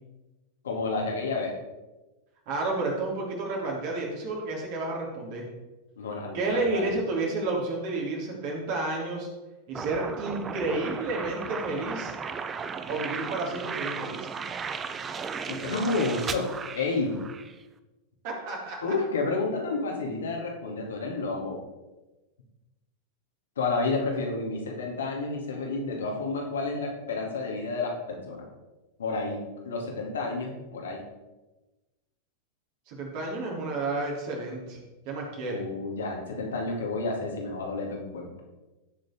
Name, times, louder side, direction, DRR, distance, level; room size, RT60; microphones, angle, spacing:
voice 1, 0.6-1.5 6.0-6.9 15.5-17.2 18.8-21.6 23.6-28.5 29.0-31.0 35.5-38.3, left 3 dB, 65° left, 0 dB, 2.6 m, -30 dB
voice 2, 2.5-5.4 6.3-9.3 9.7-12.1 12.9-14.3 18.2-18.9 32.9-34.8 35.0-35.6, right 2 dB, 45° right, -2 dB, 3.2 m, -31 dB
sound 1, 9.7-17.5, right 6 dB, 20° right, 0.7 m, -36 dB
17.0 x 6.7 x 3.7 m, 1.1 s
figure-of-eight pair, 90°, 0 cm